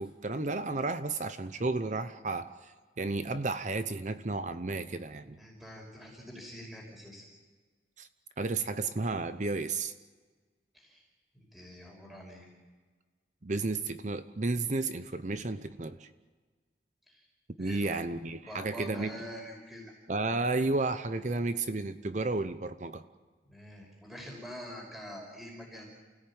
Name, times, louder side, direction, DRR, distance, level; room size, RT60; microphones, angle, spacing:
voice 1, 0.0-5.4 8.0-8.1 8.4-9.9 13.4-16.1 17.6-19.2 20.1-23.0, right 3 dB, 40° right, 11 dB, 0.8 m, -32 dB
voice 2, 5.4-7.3 10.7-11.0 11.3-12.5 17.1-17.3 17.6-18.0 18.3-19.9 23.5-25.9, equal, ahead, -1 dB, 5.4 m, -45 dB
29.0 x 17.5 x 8.8 m, 1.4 s
head